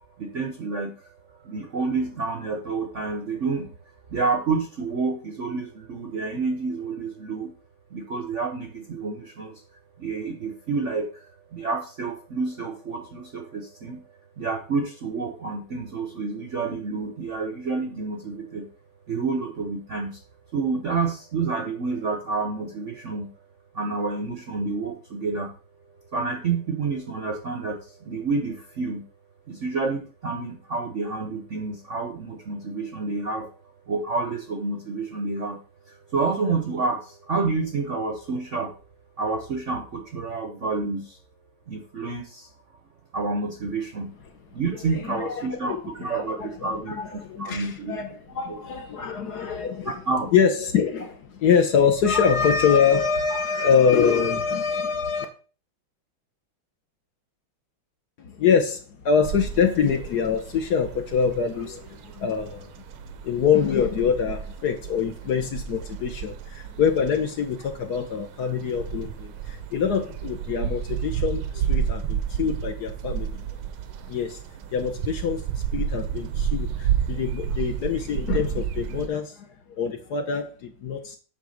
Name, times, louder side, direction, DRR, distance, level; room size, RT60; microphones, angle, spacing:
voice 1, 0.2-1.1 1.4-3.7 4.1-7.5 7.9-9.6 10.0-14.0 14.4-18.7 19.1-20.2 20.5-23.3 23.7-25.5 26.1-29.0 29.5-33.5 33.9-38.7 39.2-41.2 41.7-42.5 43.1-44.1 44.5-48.0 48.5-48.6 49.8-50.3, right 4 dB, 55° right, 4 dB, 0.8 m, -29 dB
voice 2, 44.8-50.0 50.3-55.3 58.2-62.7 63.2-73.6 74.1-74.4 74.7-75.4 75.7-81.2, left 6 dB, 60° left, 6 dB, 1.2 m, -25 dB
sound 1, 59.2-79.1, right 8 dB, 90° right, 1.6 m, -31 dB
8.3 x 3.4 x 6.4 m, 0.37 s
omnidirectional pair, 2.3 m